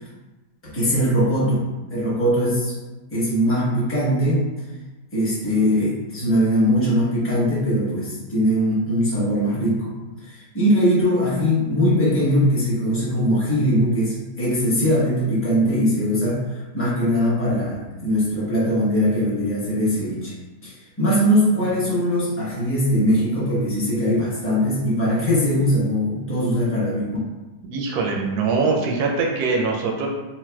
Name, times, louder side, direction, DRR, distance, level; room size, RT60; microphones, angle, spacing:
voice 1, 0.7-1.6 1.9-2.7 3.1-4.4 5.1-9.9 10.2-20.3 20.6-27.2, equal, 10° left, -9 dB, 0.6 m, -21 dB
voice 2, 27.7-30.1, right 4 dB, 75° right, 1 dB, 1.0 m, -22 dB
4.0 x 2.2 x 2.2 m, 1.1 s
omnidirectional pair, 1.8 m